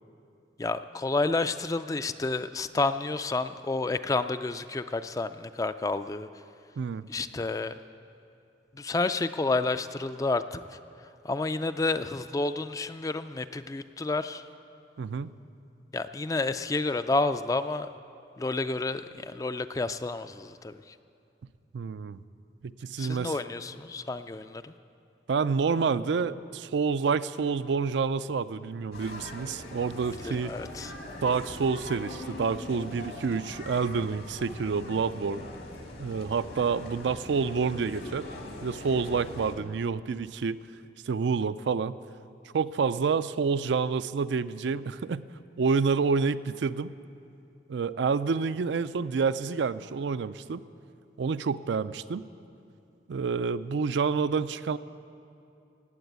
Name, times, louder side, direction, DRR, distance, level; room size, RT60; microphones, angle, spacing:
voice 1, 0.6-6.3 7.1-7.7 8.7-10.8 11.2-14.4 15.9-17.9 18.4-21.0 23.0-24.7 30.2-30.9, left 3 dB, 20° left, 11 dB, 0.3 m, -30 dB
voice 2, 15.0-15.3 21.7-22.2 22.8-23.3 25.3-30.5 30.8-31.0 31.2-35.4 36.0-38.3 38.6-40.6 41.1-42.0 42.5-45.2 45.6-46.9 47.7-50.6 51.2-52.2 53.1-54.8, right 5 dB, 75° right, 13 dB, 0.4 m, -28 dB
sound 1, 28.9-39.6, left 1 dB, 70° left, 2.1 m, -42 dB
18.0 x 7.9 x 8.1 m, 2.6 s
head